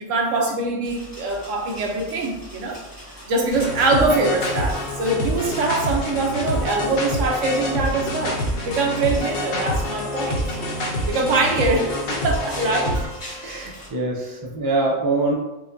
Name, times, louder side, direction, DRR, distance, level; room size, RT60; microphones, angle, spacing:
voice 1, 0.0-2.8 3.1-10.4 11.1-13.2, right 3 dB, 70° right, 1 dB, 1.0 m, -23 dB
sound 1, 0.8-13.9, equal, 20° left, 0.8 m, -42 dB
sound 2, 3.5-13.1, left 1 dB, 55° left, 0.8 m, -27 dB
Bowed string instrument, 8.9-13.8, right 1 dB, 70° left, 1.3 m, -42 dB
voice 2, 13.4-15.3, right 2 dB, 35° right, -2 dB, 0.3 m, -24 dB
5.0 x 2.2 x 2.5 m, 1.0 s
omnidirectional pair, 1.4 m